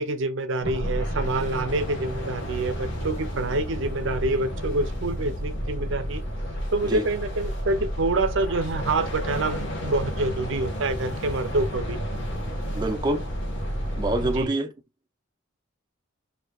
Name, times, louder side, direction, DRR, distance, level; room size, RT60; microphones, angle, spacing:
voice 1, 0.0-6.2 6.7-12.0 14.2-14.5, right 2 dB, 65° right, 0.7 m, -27 dB
sound 1, 0.6-14.5, equal, 60° left, 1.4 m, -31 dB
voice 2, 12.7-13.2 14.0-14.7, right 2 dB, 20° right, 0.5 m, -26 dB
6.4 x 2.8 x 2.4 m
head